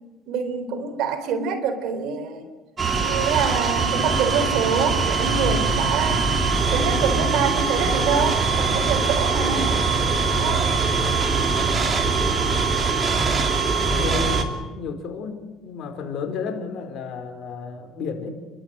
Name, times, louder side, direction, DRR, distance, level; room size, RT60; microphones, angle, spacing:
voice 1, 0.3-2.5 3.0-6.3 6.7-9.7 10.4-10.7, right 6 dB, 70° right, 8 dB, 3.8 m, -26 dB
sound 1, 2.8-14.4, right 4 dB, 25° right, 2.8 m, -22 dB
voice 2, 7.1-7.5 13.9-18.3, left 5 dB, 55° left, 5 dB, 4.4 m, -32 dB
30.0 x 12.5 x 9.0 m, 1.2 s
cardioid pair, 110°, 0 cm